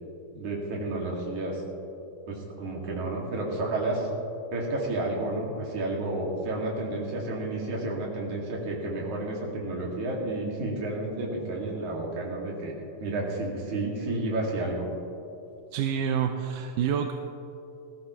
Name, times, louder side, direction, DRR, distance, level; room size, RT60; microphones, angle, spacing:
voice 1, 0.3-1.6 2.3-4.1 4.5-12.7 13.0-14.9, right 2 dB, 65° right, -2 dB, 3.7 m, -31 dB
voice 2, 15.7-17.1, right 8 dB, 80° right, 5 dB, 2.1 m, -27 dB
19.5 x 15.0 x 3.2 m, 2.8 s
omnidirectional pair, 3.7 m